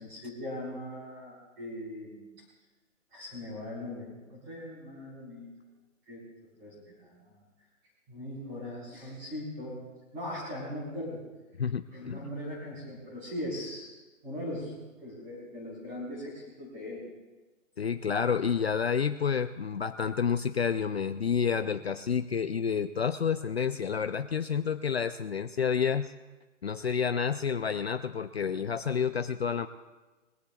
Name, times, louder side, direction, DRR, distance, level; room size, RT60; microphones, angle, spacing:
voice 1, 0.0-2.3 3.1-5.5 6.1-6.2 6.6-7.4 8.1-9.8 10.1-11.2 11.9-13.9 14.2-17.0, left 1 dB, 15° right, -5 dB, 4.2 m, -40 dB
voice 2, 11.6-12.3 17.8-26.1 26.6-29.7, left 6 dB, 55° left, 10 dB, 0.5 m, -29 dB
22.5 x 17.0 x 2.3 m, 1.2 s
hypercardioid pair, 180°, 39 cm